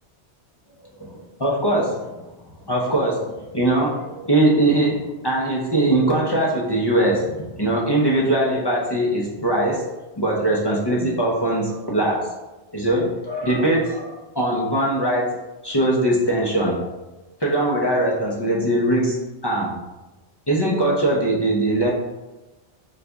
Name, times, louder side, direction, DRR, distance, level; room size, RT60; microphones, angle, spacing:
voice 1, 1.0-2.2 2.7-9.9 10.2-12.4 12.7-15.3 15.6-16.9 17.4-19.2 19.4-19.8 20.5-21.9, right 1 dB, 30° left, -4 dB, 0.5 m, -21 dB
4.0 x 2.4 x 3.4 m, 1.1 s
omnidirectional pair, 1.2 m